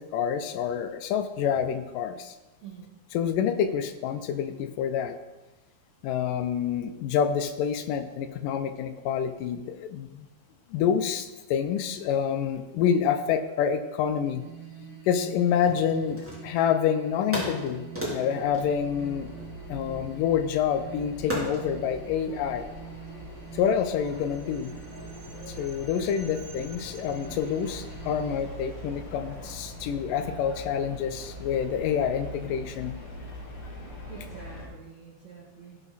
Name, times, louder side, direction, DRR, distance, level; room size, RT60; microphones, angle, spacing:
voice 1, 0.0-2.4 3.1-5.2 6.0-10.3 10.7-14.4 15.1-17.8 18.1-19.3 19.7-22.6 23.5-24.7 25.5-33.0, left 8 dB, 80° left, 8 dB, 2.0 m, -27 dB
sound 1, 14.2-28.4, right 5 dB, 90° right, 3.8 m, -45 dB
sound 2, 15.7-16.8 17.3-19.8 21.3-21.7, equal, 5° right, 2.3 m, -35 dB
sound 3, 18.4-34.7, equal, 40° left, 2.5 m, -43 dB
voice 2, 34.1-35.8, right 6 dB, 55° right, -6 dB, 2.4 m, -46 dB
16.5 x 6.0 x 4.1 m, 1.1 s
omnidirectional pair, 4.2 m